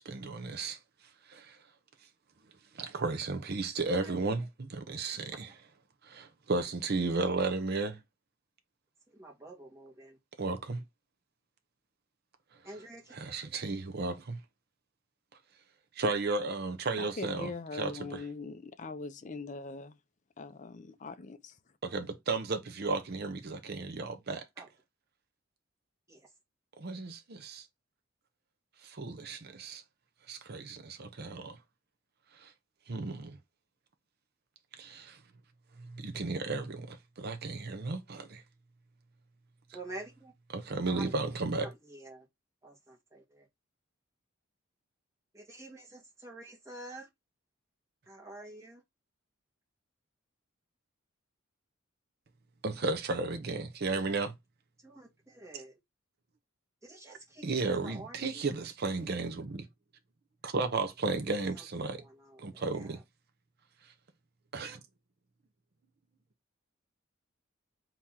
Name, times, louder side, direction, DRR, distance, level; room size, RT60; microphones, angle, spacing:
voice 1, 0.1-0.8 1.3-1.6 2.7-5.5 6.0-8.0 10.4-10.8 13.1-14.4 16.0-17.5 17.8-18.2 21.8-24.4 26.8-27.6 28.8-29.8 30.3-31.6 32.4-32.5 32.9-33.4 34.8-35.2 35.8-38.4 40.5-41.7 52.6-54.3 57.4-59.7 60.4-62.0 62.4-63.0 64.5-64.8, right 3 dB, 50° right, 0.6 m, -34 dB
voice 2, 9.1-10.2 12.6-13.7 24.6-24.7 26.1-26.3 39.7-40.3 40.9-41.1 41.6-42.3 42.6-43.5 45.3-47.1 48.1-48.8 54.8-55.8 56.8-58.4 61.5-62.9, right 2 dB, 15° right, 1.9 m, -48 dB
voice 3, 17.0-20.0 20.4-21.6, left 3 dB, 35° left, 0.5 m, -41 dB
4.2 x 3.0 x 3.6 m
head